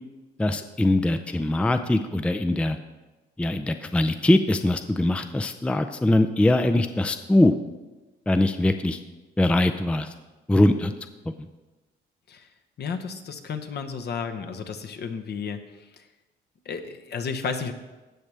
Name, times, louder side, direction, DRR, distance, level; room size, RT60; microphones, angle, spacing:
voice 1, 0.4-2.8 3.4-7.5 8.3-9.0 9.4-10.1 10.5-10.9, left 1 dB, 5° left, 9 dB, 0.4 m, -22 dB
voice 2, 12.8-16.1 16.6-17.7, left 5 dB, 55° left, 6 dB, 1.0 m, -33 dB
16.0 x 6.1 x 3.4 m, 1.2 s
cardioid pair, 90°, 20 cm